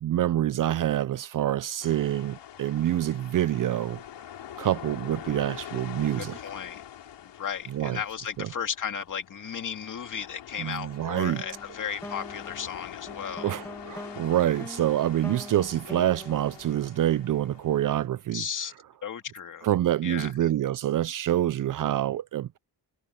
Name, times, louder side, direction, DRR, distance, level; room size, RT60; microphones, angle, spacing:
voice 1, 0.0-4.0 4.6-6.4 7.7-8.0 10.6-11.4 13.4-18.4 19.6-22.6, right 12 dB, 50° right, 0.5 m, -26 dB
sound 1, 1.8-18.1, left 10 dB, 80° left, 4.7 m, -45 dB
voice 2, 6.2-6.8 7.2-13.6 18.3-18.7 19.0-19.7 20.0-20.5, left 7 dB, 45° left, 2.4 m, -35 dB
sound 2, 11.2-17.6, left 1 dB, 5° left, 1.5 m, -44 dB
wide cardioid pair, 165°, 42 cm